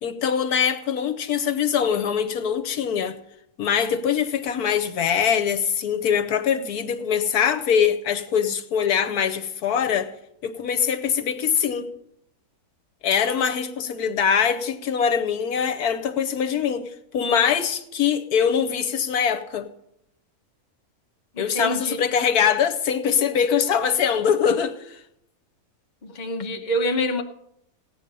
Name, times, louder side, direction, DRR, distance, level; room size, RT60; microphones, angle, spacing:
voice 1, 0.0-3.2 3.6-10.1 10.4-11.9 13.0-16.9 17.1-19.7 21.4-25.0, left 7 dB, 75° left, 1.4 m, -23 dB
voice 2, 21.4-22.0 26.0-27.2, equal, 35° left, 1.0 m, -26 dB
16.0 x 9.8 x 5.4 m
omnidirectional pair, 1.6 m